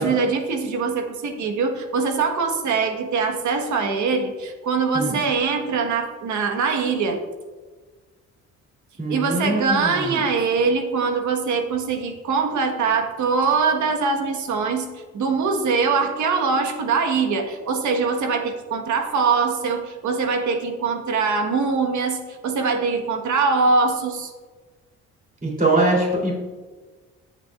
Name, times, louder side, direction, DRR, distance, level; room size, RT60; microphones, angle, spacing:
voice 1, 0.0-7.2 9.1-24.3, right 4 dB, 75° right, 4 dB, 1.3 m, -23 dB
voice 2, 9.0-10.2 25.4-26.3, right 2 dB, 30° right, -3 dB, 3.1 m, -22 dB
19.0 x 7.1 x 2.4 m, 1.4 s
cardioid pair, 90°, 30 cm